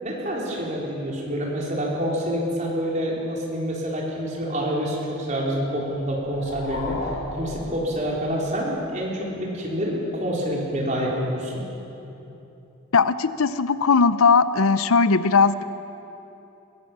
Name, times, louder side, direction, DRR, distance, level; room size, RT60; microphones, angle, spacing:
voice 1, 0.0-11.6, equal, 35° right, -3 dB, 4.0 m, -27 dB
sound 1, 5.9-8.5, left 2 dB, 65° left, 4.2 m, -35 dB
voice 2, 12.9-15.6, left 4 dB, 85° left, 14 dB, 0.7 m, -18 dB
21.5 x 17.0 x 7.4 m, 3.0 s
head